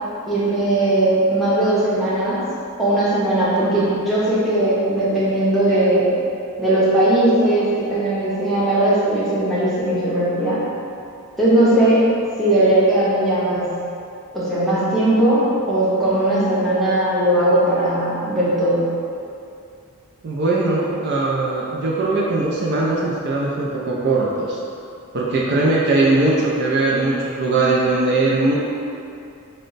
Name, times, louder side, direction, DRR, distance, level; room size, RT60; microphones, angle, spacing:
voice 1, 0.3-2.4 2.8-6.1 6.6-10.6 11.4-12.1 12.4-13.8 14.3-18.9, right 1 dB, ahead, -11 dB, 0.8 m, -18 dB
voice 2, 20.2-24.6 25.1-28.6, right 2 dB, 50° right, -4 dB, 0.4 m, -20 dB
4.1 x 2.1 x 3.9 m, 2.5 s
head